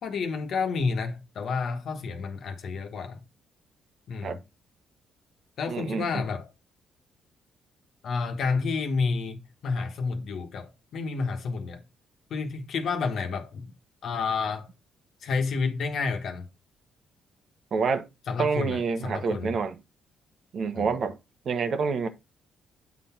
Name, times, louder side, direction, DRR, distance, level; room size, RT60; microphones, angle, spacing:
voice 1, 0.0-3.2 4.1-4.3 5.6-6.5 8.0-11.8 12.3-13.7 14.0-14.7 15.2-16.4 18.3-19.5 20.7-20.9, left 4 dB, 65° left, 1.3 m, -30 dB
voice 2, 5.7-6.2 17.7-18.1 18.4-19.8 20.5-21.2 21.4-22.1, right 5 dB, 55° right, 1.0 m, -27 dB
8.2 x 4.1 x 4.3 m
cardioid pair, 90°, 0 cm